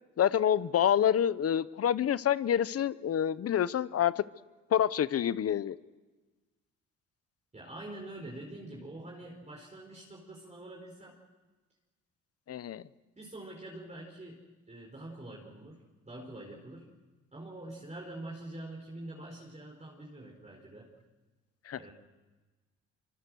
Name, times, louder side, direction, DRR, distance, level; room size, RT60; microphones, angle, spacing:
voice 1, 0.2-4.2 4.7-5.8 12.5-12.8 21.7-21.8, left 9 dB, 55° left, 17 dB, 0.9 m, -27 dB
voice 2, 7.5-11.2 13.1-16.9 17.3-20.9 21.8-21.9, right 1 dB, 25° right, -2 dB, 4.8 m, -45 dB
25.0 x 25.0 x 6.4 m, 1.3 s
cardioid pair, 90°, 30 cm